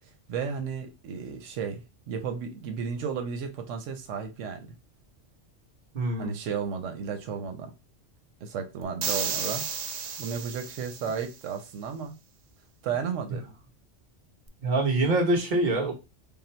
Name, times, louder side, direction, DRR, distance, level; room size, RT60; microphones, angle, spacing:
voice 1, 0.3-4.7 6.2-7.7 8.4-9.7 10.2-12.1 12.8-13.5, right 6 dB, 90° right, 1.0 m, -33 dB
voice 2, 5.9-6.3 14.6-15.9, right 2 dB, 40° right, 1.2 m, -24 dB
sound 1, 9.0-11.3, right 6 dB, 65° right, 0.4 m, -33 dB
3.6 x 2.0 x 4.3 m
omnidirectional pair, 1.3 m